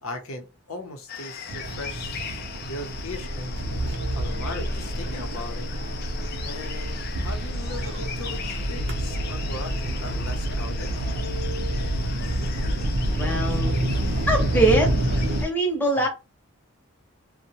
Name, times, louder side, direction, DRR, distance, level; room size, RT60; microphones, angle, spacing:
voice 1, 0.0-2.4 2.7-3.6 4.2-5.7 6.4-10.9 16.0-16.1, left 2 dB, 85° left, 0.7 m, -38 dB
sound 1, 1.1-15.5, left 7 dB, 45° left, 0.4 m, -39 dB
sound 2, 1.5-15.4, right 1 dB, 55° right, 0.6 m, -28 dB
voice 2, 13.1-13.7 14.3-14.9 15.4-16.1, right 1 dB, 10° left, 0.7 m, -22 dB
2.6 x 2.1 x 2.8 m
head